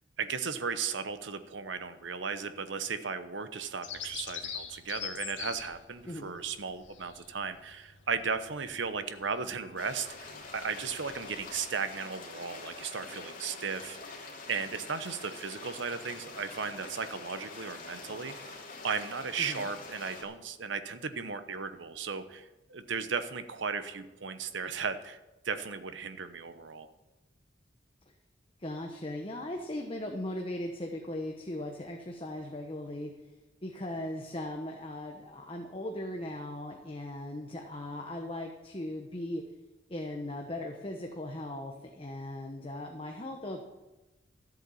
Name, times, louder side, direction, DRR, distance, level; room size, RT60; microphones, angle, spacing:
voice 1, 0.2-14.2 14.5-18.5 18.8-25.2 25.4-26.9, right 5 dB, 75° right, 11 dB, 0.9 m, -36 dB
Bird vocalization bird call bird song, 3.8-11.7, left 8 dB, 75° left, 1.6 m, -45 dB
sound 1, 9.8-20.2, left 3 dB, 45° left, 2.8 m, -45 dB
voice 2, 28.6-33.1 33.6-39.4 39.9-43.6, left 1 dB, 30° left, 2 dB, 1.0 m, -38 dB
13.5 x 8.0 x 7.1 m, 1.0 s
head